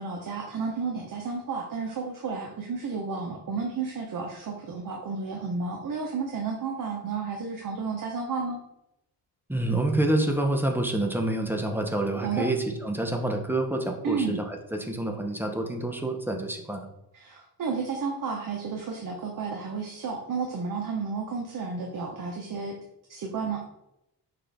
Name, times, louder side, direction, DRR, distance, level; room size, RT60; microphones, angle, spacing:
voice 1, 0.0-8.6 12.2-12.5 14.0-14.4 17.1-22.8 23.1-23.6, right 5 dB, 50° right, 1 dB, 0.7 m, -32 dB
voice 2, 9.5-16.9, right 1 dB, 5° right, 3 dB, 0.6 m, -27 dB
5.9 x 2.4 x 3.4 m, 0.85 s
cardioid pair, 90°, 43 cm